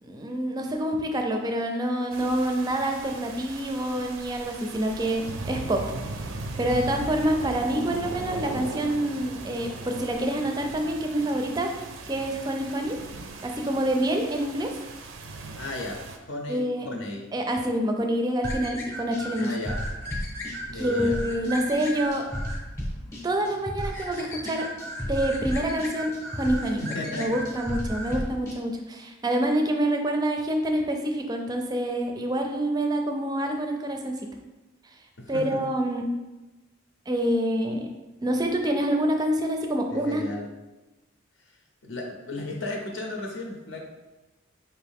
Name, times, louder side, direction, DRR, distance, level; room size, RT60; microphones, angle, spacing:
voice 1, 0.0-5.8 6.6-11.7 12.1-13.0 13.4-14.7 16.5-16.9 17.3-19.5 20.7-22.2 23.2-24.7 25.1-26.8 27.2-34.1 35.3-36.0 37.1-37.9 38.2-40.2, right 1 dB, 20° right, 3 dB, 0.4 m, -27 dB
sound 1, 2.1-16.2, right 2 dB, 75° right, 0.4 m, -38 dB
voice 2, 15.5-17.3 19.4-19.8 20.7-21.2 26.6-27.3 35.2-35.6 39.9-40.5 41.8-43.8, left 2 dB, 70° left, 0 dB, 0.7 m, -35 dB
sound 2, 18.4-28.6, equal, 15° left, 0.7 m, -34 dB
4.6 x 2.6 x 3.5 m, 1.1 s
head